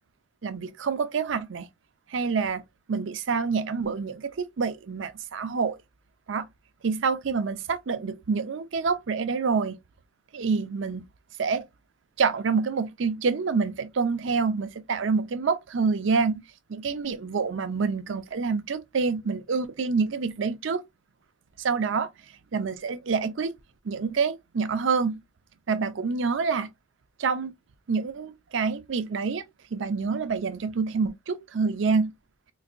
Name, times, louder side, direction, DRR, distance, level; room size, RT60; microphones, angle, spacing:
voice 1, 0.4-1.7 2.1-2.6 2.9-5.8 6.3-6.5 6.8-9.8 10.3-11.1 11.4-11.6 12.2-16.4 16.7-20.8 21.6-22.1 22.5-23.6 23.8-25.2 25.7-26.7 27.2-27.5 27.9-29.4 29.7-32.1, right 5 dB, 65° right, 0.5 m, -27 dB
3.9 x 2.6 x 2.5 m
head